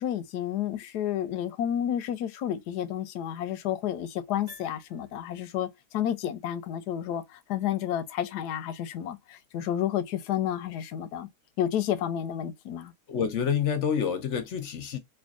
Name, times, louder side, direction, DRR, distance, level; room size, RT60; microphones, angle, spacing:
voice 1, 0.0-11.3 11.6-12.9, left 10 dB, 85° left, 1.2 m, -31 dB
Piano, 4.4-5.7 6.0-6.1, right 2 dB, 50° right, 1.9 m, -54 dB
voice 2, 13.1-15.0, left 7 dB, 60° left, 0.8 m, -28 dB
4.4 x 2.6 x 2.4 m
omnidirectional pair, 1.7 m